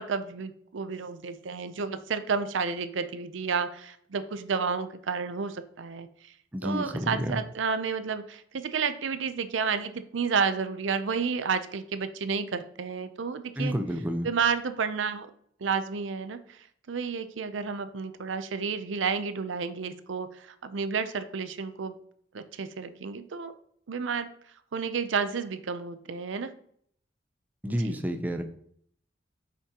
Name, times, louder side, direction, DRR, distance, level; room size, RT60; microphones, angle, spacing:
voice 1, 0.0-6.1 6.6-13.7 14.2-15.3 15.6-16.6 16.9-22.0 22.3-23.5 23.9-24.3 24.7-26.5 27.9-28.0, right 5 dB, 80° right, 11 dB, 0.5 m, -31 dB
voice 2, 6.5-7.4 13.6-14.3 27.6-28.4, equal, 10° right, 7 dB, 0.5 m, -30 dB
8.4 x 5.8 x 2.9 m, 0.64 s
head